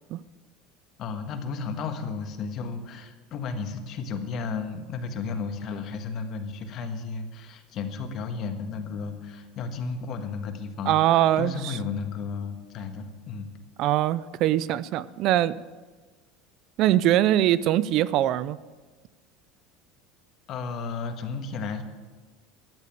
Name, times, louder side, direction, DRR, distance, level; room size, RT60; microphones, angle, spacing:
voice 1, 1.0-13.5 20.5-21.8, left 5 dB, 40° left, 7 dB, 1.5 m, -33 dB
voice 2, 10.9-11.8 13.8-15.6 16.8-18.6, right 13 dB, 50° right, 18 dB, 0.4 m, -22 dB
12.5 x 8.2 x 8.6 m, 1.3 s
supercardioid pair, 140°, 0 cm